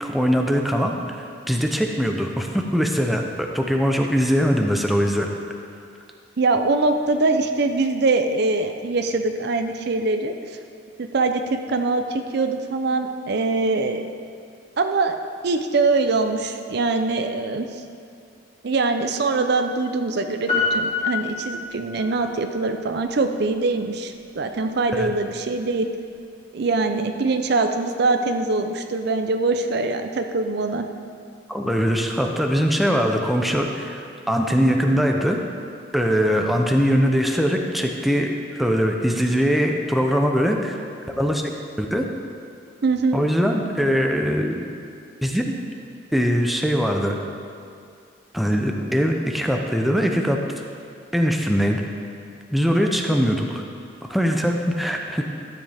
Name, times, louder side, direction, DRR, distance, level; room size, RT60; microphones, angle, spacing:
voice 1, 0.0-5.3 24.9-25.1 31.5-34.0 34.3-35.4 35.9-40.8 41.2-41.5 41.8-42.0 43.1-44.7 45.2-45.5 46.1-47.2 48.3-50.4 51.1-51.8 52.5-53.6 54.0-55.2, equal, ahead, 2 dB, 0.6 m, -21 dB
voice 2, 6.4-10.3 11.0-14.0 14.8-15.1 15.4-17.7 18.6-25.9 26.5-30.8 42.8-43.2, right 3 dB, 60° right, 6 dB, 0.5 m, -23 dB
Piano, 20.5-22.3 22.6-22.7, left 4 dB, 35° left, 2.6 m, -26 dB
12.5 x 7.8 x 3.5 m, 2.3 s
head